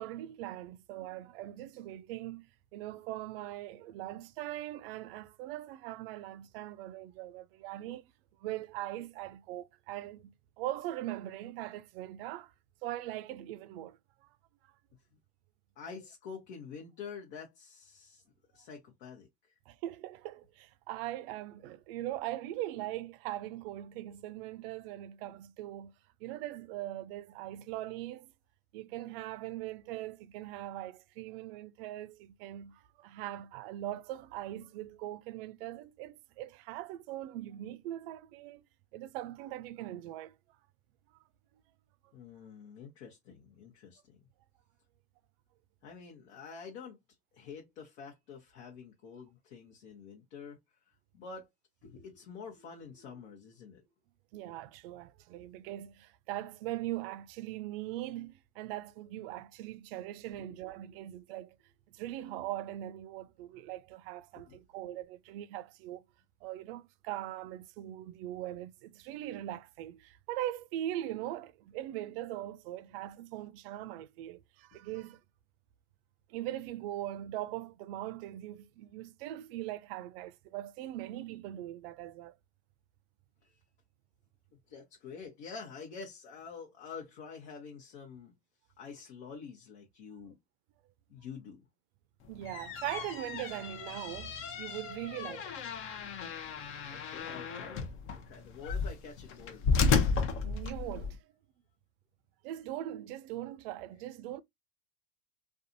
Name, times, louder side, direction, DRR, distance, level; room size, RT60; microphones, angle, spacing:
voice 1, 0.0-2.5 2.7-8.0 8.4-12.5 12.8-14.3 14.6-14.7 19.7-25.9 26.2-28.3 28.7-38.6 38.9-40.4 54.3-61.6 61.9-66.1 66.4-75.2 76.3-82.4 92.3-95.5 100.4-101.3 102.4-104.4, right 14 dB, 60° right, 0.4 m, -41 dB
voice 2, 15.8-18.2 18.5-19.6 42.1-44.2 45.8-47.0 47.3-50.6 51.1-51.5 51.8-53.9 60.5-61.2 64.4-64.6 72.9-73.0 83.4-83.6 84.7-88.3 88.8-90.3 91.1-91.6 96.9-99.8, left 5 dB, 65° left, 1.0 m, -48 dB
sound 1, 92.3-101.2, left 5 dB, 40° left, 0.7 m, -33 dB
2.6 x 2.4 x 2.5 m
supercardioid pair, 115°, 33 cm